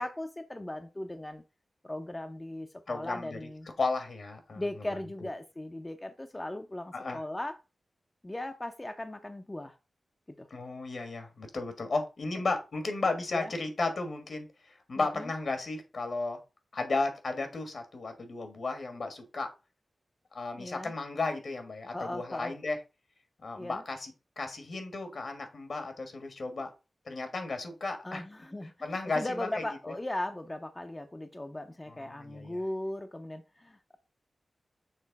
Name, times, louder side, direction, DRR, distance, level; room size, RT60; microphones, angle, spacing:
voice 1, 0.0-1.4 1.8-3.7 4.6-7.6 8.2-9.8 10.4-10.5 13.3-13.5 15.0-15.3 20.5-20.9 21.9-22.5 23.6-23.8 28.0-34.0, left 1 dB, 20° left, 0.6 m, -38 dB
voice 2, 2.9-3.4 3.8-4.6 6.9-7.2 10.5-14.5 14.9-16.4 16.7-19.5 20.3-22.8 23.4-24.1 24.4-26.7 27.1-28.2 28.8-29.6 32.2-32.6, left 3 dB, 70° left, 1.5 m, -34 dB
6.6 x 3.1 x 4.7 m
wide cardioid pair, 70°, 0 cm